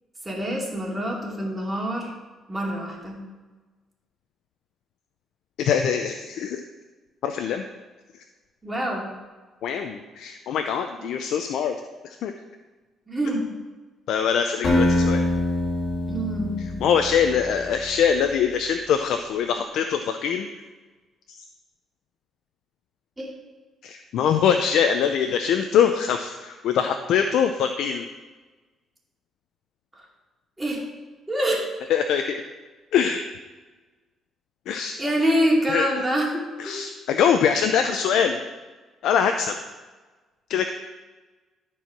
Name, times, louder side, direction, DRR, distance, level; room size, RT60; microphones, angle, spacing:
voice 1, 0.2-2.1 2.5-3.2 8.6-9.1 11.0-11.1 13.1-13.4 16.1-16.7 23.2-23.3 29.9-30.0 30.6-30.8 31.3-31.7 35.0-36.8, equal, 15° right, -2 dB, 2.5 m, -26 dB
voice 2, 5.6-6.6 7.2-7.6 9.6-11.7 12.2-12.3 14.1-15.2 16.8-20.5 21.3-21.4 23.8-28.1 31.9-32.4 32.9-33.2 34.7-34.9 35.7-35.9 36.6-38.4 39.0-39.6 40.5-40.7, left 7 dB, 75° left, 6 dB, 0.6 m, -23 dB
Acoustic guitar, 14.6-17.7, left 1 dB, 55° left, 3.4 m, -24 dB
13.0 x 4.7 x 5.9 m, 1.3 s
cardioid pair, 105°, 0 cm